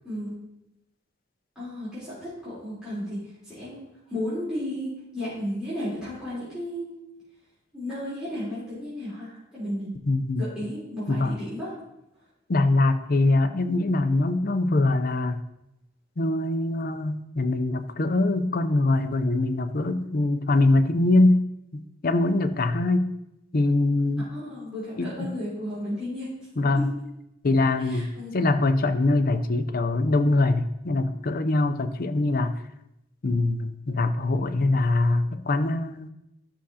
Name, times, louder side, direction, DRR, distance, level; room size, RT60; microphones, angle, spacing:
voice 1, 1.6-7.0 7.7-10.0 10.4-11.7 24.3-26.3 26.7-26.9 27.8-28.4, equal, 5° right, -13 dB, 3.6 m, -34 dB
voice 2, 10.1-10.5 11.1-11.3 12.5-15.4 16.2-21.4 21.7-23.1 23.5-24.3 25.0-25.3 26.6-26.9 27.4-32.6 33.2-36.1, left 2 dB, 50° left, 8 dB, 0.6 m, -23 dB
13.5 x 6.2 x 2.8 m, 0.87 s
head